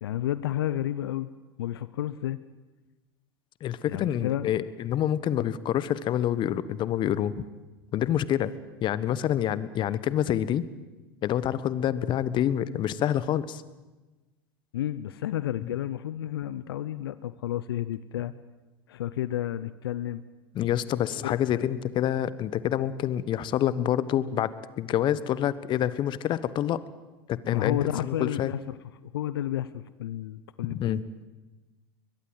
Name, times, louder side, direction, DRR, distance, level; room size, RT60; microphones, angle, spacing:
voice 1, 0.0-1.3 1.6-2.4 3.9-4.5 14.7-18.3 18.9-20.2 21.2-21.7 27.5-28.8 29.0-31.0, left 12 dB, 70° left, 15 dB, 0.8 m, -31 dB
voice 2, 3.6-7.4 7.9-8.5 8.8-10.6 11.2-13.6 15.6-15.7 20.5-26.8 27.3-28.5 30.7-31.0, left 11 dB, 40° left, 16 dB, 1.2 m, -27 dB
22.0 x 21.5 x 8.0 m, 1.2 s
hypercardioid pair, 90°, 13 cm